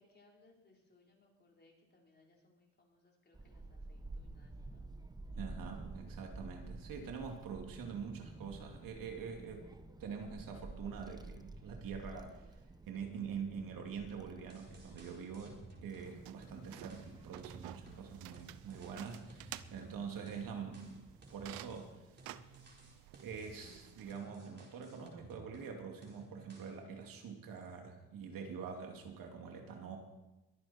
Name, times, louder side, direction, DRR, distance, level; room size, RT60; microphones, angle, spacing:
voice 1, 0.0-4.9, left 2 dB, 30° left, -1 dB, 4.0 m, -68 dB
Child speech kid speaking / Wind, 3.3-21.7, right 2 dB, 10° right, 0.9 m, -52 dB
voice 2, 5.3-9.7 10.0-12.5 12.9-21.9 23.2-30.0, right 6 dB, 70° right, 2 dB, 2.6 m, -45 dB
sound 1, 14.5-16.1 16.4-20.0 20.3-25.8 26.0-26.8, right 2 dB, 30° right, 4.5 m, -57 dB
sound 2, 16.1-24.1, right 14 dB, 85° right, 0.7 m, -53 dB
22.5 x 9.0 x 4.4 m, 1.0 s
cardioid pair, 95°, 35 cm